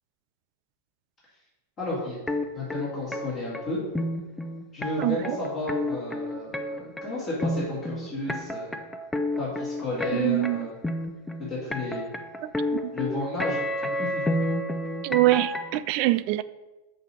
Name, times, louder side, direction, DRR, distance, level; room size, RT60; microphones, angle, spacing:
voice 1, 1.8-2.2 2.5-3.8 4.7-8.8 9.4-10.7 11.4-12.1 12.9-14.4, left 2 dB, 30° left, 2.6 m, -32 dB
sound 1, 2.3-15.8, left 1 dB, 10° left, 0.5 m, -30 dB
voice 2, 5.0-5.4 10.1-10.7 12.4-12.9 15.0-16.4, right 17 dB, 45° right, 0.3 m, -24 dB
6.7 x 4.5 x 6.2 m
figure-of-eight pair, 90°, 0 cm